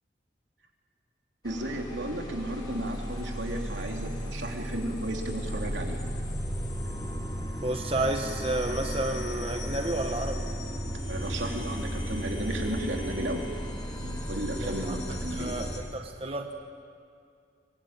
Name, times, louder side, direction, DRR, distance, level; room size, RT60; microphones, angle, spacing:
sound 1, 1.4-15.8, equal, 25° left, 3.4 m, -34 dB
voice 1, 1.4-6.0 6.8-7.2 11.1-13.5 14.0-15.6, right 1 dB, 90° right, 1 dB, 3.1 m, -34 dB
voice 2, 7.6-10.5 14.5-15.0 15.4-16.5, right 2 dB, 30° right, 4 dB, 1.2 m, -31 dB
23.5 x 20.5 x 8.9 m, 2.3 s
head